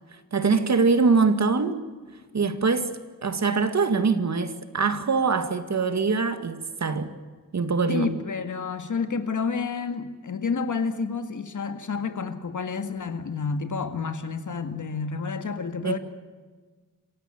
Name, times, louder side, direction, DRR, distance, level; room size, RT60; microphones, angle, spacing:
voice 1, 0.3-1.8 2.3-2.9 3.2-7.1 7.5-8.1 15.8-16.0, right 4 dB, 55° right, 2.0 m, -23 dB
voice 2, 7.9-16.0, left 5 dB, 65° left, 2.1 m, -29 dB
27.0 x 16.0 x 9.0 m
wide cardioid pair, 110°, 33 cm